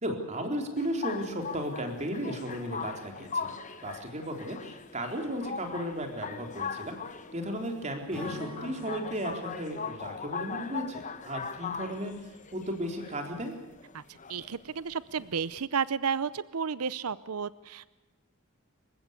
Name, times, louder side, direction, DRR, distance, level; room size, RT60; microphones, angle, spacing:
voice 1, 0.0-3.5 3.8-7.0 7.3-13.6, equal, 30° right, 4 dB, 3.9 m, -35 dB
sound 1, 0.8-15.6, left 5 dB, 35° left, 1.1 m, -40 dB
Acoustic guitar / Strum, 8.1-11.7, equal, 5° left, 5.2 m, -48 dB
voice 2, 14.3-17.9, right 6 dB, 85° right, 18 dB, 0.7 m, -32 dB
28.0 x 16.0 x 8.4 m, 1.1 s
head